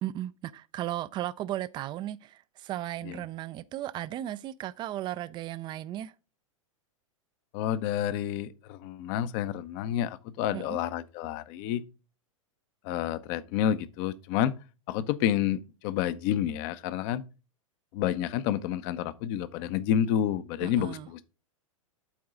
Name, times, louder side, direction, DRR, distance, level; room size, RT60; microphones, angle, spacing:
voice 1, 0.0-6.1 10.5-10.8 20.6-21.1, right 13 dB, 25° right, 0.4 m, -35 dB
voice 2, 7.5-11.8 12.8-14.5 14.9-17.2 17.9-21.3, left 10 dB, 40° left, 0.8 m, -29 dB
12.0 x 4.7 x 3.7 m
figure-of-eight pair, 100°, 17 cm